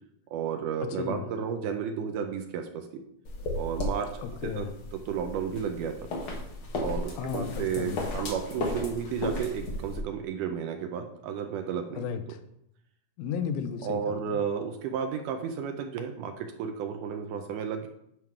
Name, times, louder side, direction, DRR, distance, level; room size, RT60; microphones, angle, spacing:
voice 1, 0.3-3.0 3.6-4.2 4.6-4.7 4.9-6.0 6.8-12.1 13.8-17.9, right 7 dB, 80° right, 6 dB, 1.9 m, -32 dB
voice 2, 0.9-1.2 4.2-4.7 7.2-8.1 12.0-12.4 13.2-14.4, left 7 dB, 85° left, 9 dB, 2.5 m, -34 dB
sound 1, 3.3-10.0, left 2 dB, 55° left, 1.5 m, -35 dB
10.5 x 3.7 x 4.6 m, 0.76 s
omnidirectional pair, 4.1 m